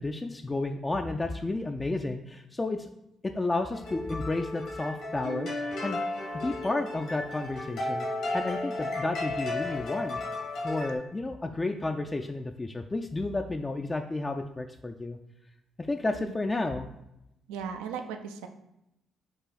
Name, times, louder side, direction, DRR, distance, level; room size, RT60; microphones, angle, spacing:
voice 1, 0.0-2.9 3.2-6.0 6.4-8.1 8.3-10.2 10.6-15.2 15.8-16.9, left 2 dB, 25° left, 4 dB, 0.3 m, -32 dB
sound 1, 3.7-11.0, left 2 dB, 75° left, 1.4 m, -34 dB
voice 2, 17.5-18.5, right 7 dB, 85° right, 6 dB, 0.4 m, -37 dB
4.7 x 2.4 x 4.0 m, 0.84 s
hypercardioid pair, 50°, 0 cm